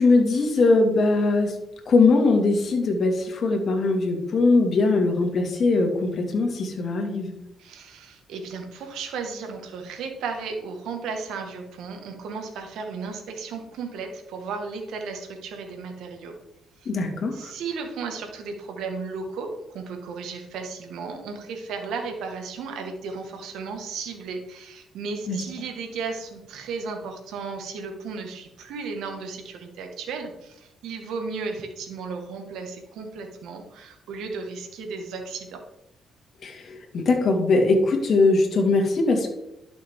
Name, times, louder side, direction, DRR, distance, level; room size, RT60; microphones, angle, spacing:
voice 1, 0.0-1.6 1.9-7.3 16.9-17.5 25.3-25.4 36.4-39.3, left 3 dB, 55° left, 2 dB, 2.2 m, -21 dB
voice 2, 7.6-16.4 16.8-16.9 17.3-35.6, right 4 dB, 85° right, 4 dB, 1.7 m, -34 dB
11.5 x 6.4 x 3.7 m, 0.88 s
cardioid pair, 90°, 0 cm